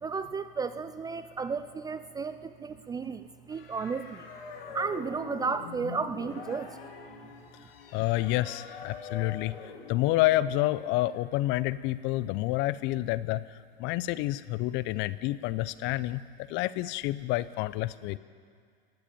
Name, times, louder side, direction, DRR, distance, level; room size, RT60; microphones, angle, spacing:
voice 1, 0.0-4.2 4.7-6.7, right 5 dB, 15° right, 12 dB, 0.4 m, -33 dB
sound 1, 3.5-10.9, left 5 dB, 75° left, 2.6 m, -44 dB
voice 2, 7.9-9.6 9.9-16.2 16.5-18.2, left 17 dB, 40° left, 16 dB, 0.6 m, -29 dB
19.5 x 7.9 x 9.2 m, 2.1 s
hypercardioid pair, 100°, 29 cm